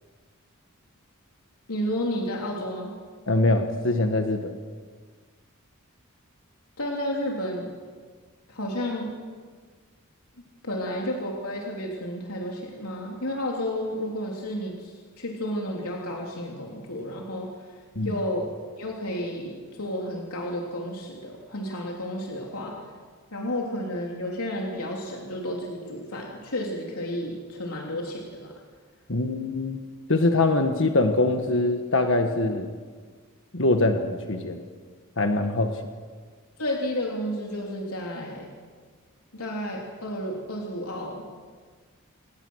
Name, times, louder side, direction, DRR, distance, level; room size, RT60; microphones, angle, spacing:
voice 1, 1.7-2.9 6.8-7.7 8.5-9.1 10.6-18.5 18.8-22.8 23.3-28.5 36.6-38.5 39.3-41.3, left 1 dB, 90° left, -1 dB, 3.3 m, -31 dB
voice 2, 3.3-4.6 17.9-18.1 29.1-29.8 30.1-32.7 33.5-34.6 35.2-35.8, left 2 dB, 60° left, 5 dB, 1.5 m, -23 dB
28.5 x 19.5 x 6.4 m, 1.5 s
head